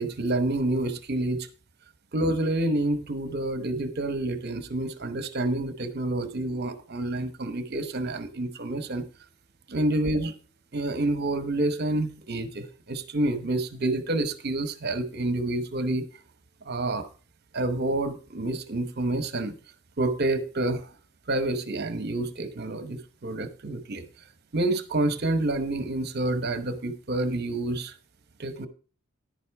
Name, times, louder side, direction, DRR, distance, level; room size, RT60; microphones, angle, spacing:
voice 1, 0.0-1.5 2.1-9.0 9.7-10.3 10.7-16.0 16.7-17.1 17.5-19.5 20.0-20.9 21.3-24.0 24.5-27.9 28.4-28.7, right 2 dB, 50° right, 0.9 m, -28 dB
10.5 x 9.4 x 3.4 m
head